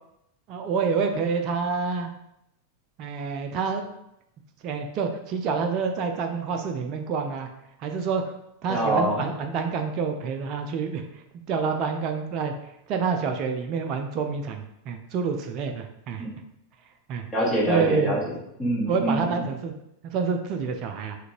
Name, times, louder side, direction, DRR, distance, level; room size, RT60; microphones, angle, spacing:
voice 1, 0.5-2.1 3.0-3.9 4.6-7.5 7.8-8.2 8.6-11.0 11.5-12.5 12.9-16.3 17.1-17.3 17.7-18.2 18.9-19.7 20.1-21.2, right 5 dB, 40° right, 5 dB, 0.3 m, -27 dB
voice 2, 8.7-9.2 16.2-16.3 17.3-19.4, right 1 dB, 15° left, -6 dB, 1.3 m, -25 dB
3.6 x 2.5 x 3.0 m, 0.80 s
figure-of-eight pair, 90°, 0 cm